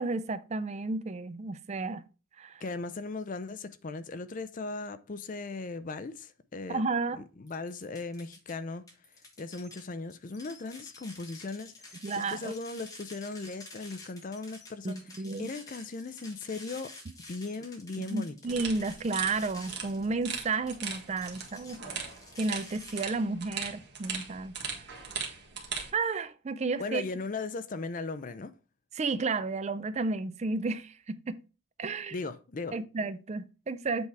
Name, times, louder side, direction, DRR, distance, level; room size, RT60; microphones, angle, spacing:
voice 1, 0.0-2.0 2.4-2.6 6.7-7.2 12.0-12.5 14.8-15.5 18.0-21.8 22.4-24.5 25.9-27.0 28.9-31.4 31.8-32.2 32.7-34.1, right 3 dB, 30° right, 0.4 m, -32 dB
voice 2, 2.6-6.8 7.1-8.8 9.4-15.0 15.4-16.9 17.3-18.4 26.8-28.5 32.1-32.8, left 3 dB, 35° left, 0.5 m, -38 dB
sound 1, 7.5-8.5 8.9-23.0, left 2 dB, 15° left, 1.4 m, -50 dB
sound 2, 18.5-25.9, right 6 dB, 50° right, 1.7 m, -39 dB
8.0 x 3.5 x 4.6 m
head